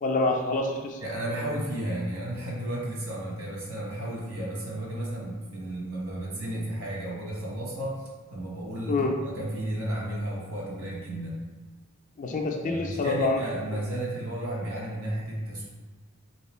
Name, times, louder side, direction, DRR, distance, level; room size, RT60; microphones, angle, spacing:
voice 1, 0.0-1.0 8.9-9.1 12.2-13.4, left 3 dB, 35° left, 2 dB, 0.3 m, -26 dB
voice 2, 1.0-8.0 8.3-11.4 12.6-15.6, right 1 dB, 75° right, -4 dB, 1.1 m, -33 dB
3.2 x 2.9 x 3.0 m, 1.3 s
head